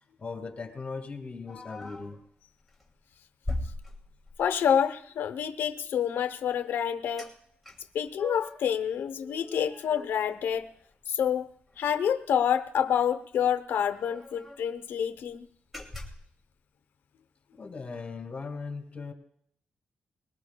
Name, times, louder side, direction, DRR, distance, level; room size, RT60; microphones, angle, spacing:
voice 1, 0.2-2.2 17.5-19.1, left 4 dB, 35° left, 4 dB, 2.5 m, -38 dB
sound 1, 1.5-2.2 2.7-2.9 3.4-4.6 7.2-7.3 7.6-8.7 9.1-10.9 11.2-11.3 11.7-11.9 13.0-13.1 13.3-13.4 13.9-14.7 15.2-15.3 15.7-16.4, left 2 dB, ahead, 2.4 m, -40 dB
voice 2, 4.4-7.3 7.9-10.7 11.1-11.5 11.8-15.5, left 8 dB, 90° left, 10 dB, 0.8 m, -28 dB
21.5 x 18.0 x 2.3 m, 0.63 s
cardioid pair, 105°, 4 cm